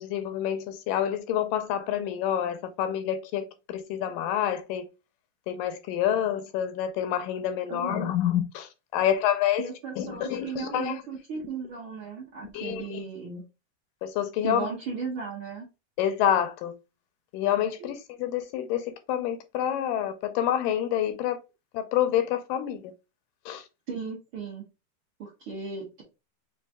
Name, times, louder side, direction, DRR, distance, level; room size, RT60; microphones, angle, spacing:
voice 1, 0.0-4.9 5.5-9.7 10.0-11.0 12.5-13.0 14.0-14.7 16.0-16.7 17.3-21.4 21.7-22.9 23.5-23.6, left 10 dB, 85° left, 2.1 m, -28 dB
voice 2, 7.7-8.1 9.6-13.4 14.4-15.7 17.8-17.9 23.9-24.6 25.2-26.0, right 5 dB, 60° right, 1.4 m, -36 dB
5.4 x 2.5 x 3.4 m
omnidirectional pair, 3.9 m